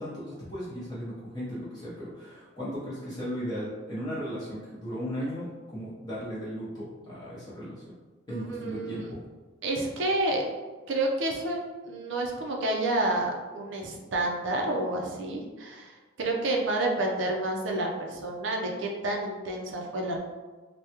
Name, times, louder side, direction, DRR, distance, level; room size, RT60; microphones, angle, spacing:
voice 1, 0.0-7.8 8.3-9.2, equal, 20° left, -10 dB, 0.7 m, -36 dB
voice 2, 8.3-9.1 9.6-10.4 10.9-11.6 11.8-20.2, right 2 dB, 70° right, 0 dB, 0.5 m, -29 dB
3.4 x 2.2 x 2.8 m, 1.3 s
head